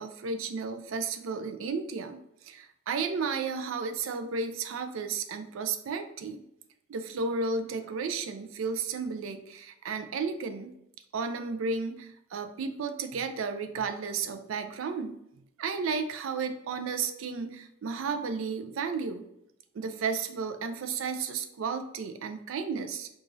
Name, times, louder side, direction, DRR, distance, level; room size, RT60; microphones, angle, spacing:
voice 1, 0.0-6.4 6.9-10.8 11.1-15.2 15.6-19.3 19.7-23.1, right 5 dB, 80° right, 7 dB, 0.4 m, -33 dB
4.8 x 2.3 x 2.5 m, 0.81 s
head